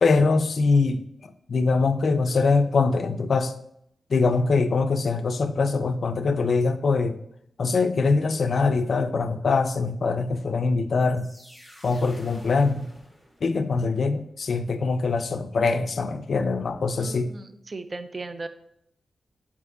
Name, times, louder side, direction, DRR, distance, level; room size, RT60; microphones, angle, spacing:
voice 1, 0.0-3.5 4.1-7.2 7.6-11.3 11.8-12.9 13.4-17.3, left 4 dB, 70° left, 11 dB, 0.3 m, -23 dB
sound 1, 11.0-13.8, equal, 5° left, 1.2 m, -49 dB
voice 2, 17.0-18.5, right 3 dB, 45° right, 10 dB, 0.4 m, -36 dB
4.4 x 2.9 x 3.7 m, 0.74 s
cardioid pair, 45°, 0 cm